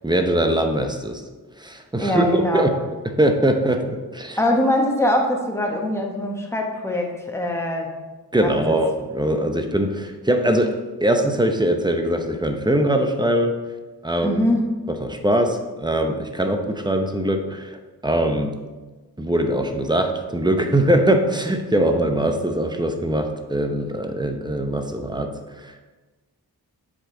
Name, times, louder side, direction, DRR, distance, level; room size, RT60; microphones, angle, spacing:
voice 1, 0.0-1.2 1.6-2.7 3.2-4.4 8.3-10.7 11.0-13.5 14.0-14.4 14.9-18.5 19.2-25.3 25.6-25.8, right 1 dB, 10° right, 5 dB, 0.7 m, -22 dB
voice 2, 2.0-2.7 4.4-7.9 8.4-8.7 14.2-14.7, left 1 dB, 5° left, 1 dB, 1.1 m, -22 dB
7.3 x 5.2 x 3.8 m, 1.2 s
wide cardioid pair, 75°, 38 cm